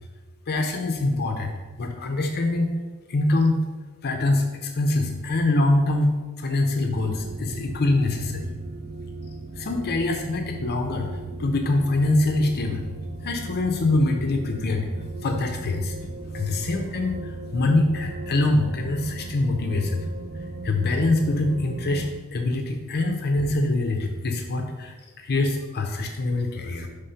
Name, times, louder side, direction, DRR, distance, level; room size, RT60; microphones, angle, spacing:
voice 1, 0.5-1.5 1.8-2.7 3.1-3.6 4.0-8.5 9.6-11.1 11.4-12.9 13.2-14.9 15.2-20.0 20.6-26.9, left 2 dB, 45° left, 4 dB, 0.5 m, -24 dB
sound 1, 6.8-22.1, right 2 dB, 40° right, 0.4 m, -37 dB
5.3 x 3.5 x 5.6 m, 1.3 s
head